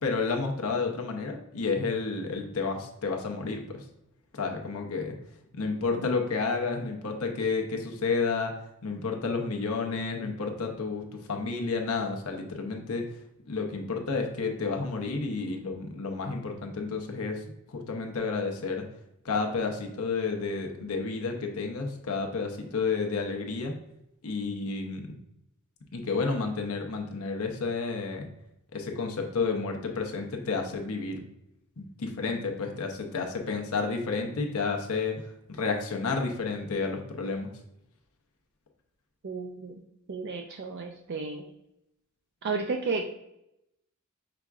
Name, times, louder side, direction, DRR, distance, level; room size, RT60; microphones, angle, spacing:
voice 1, 0.0-3.8 4.3-5.1 5.5-8.5 8.8-13.0 13.5-17.4 17.7-18.8 19.2-23.7 24.2-25.1 25.9-28.3 28.7-31.2 31.8-35.2 35.5-37.5, left 4 dB, 75° left, 3 dB, 0.8 m, -31 dB
voice 2, 39.2-39.8 40.1-41.5 42.4-43.0, right 4 dB, 50° right, 2 dB, 0.4 m, -32 dB
5.8 x 3.6 x 2.3 m, 0.82 s
head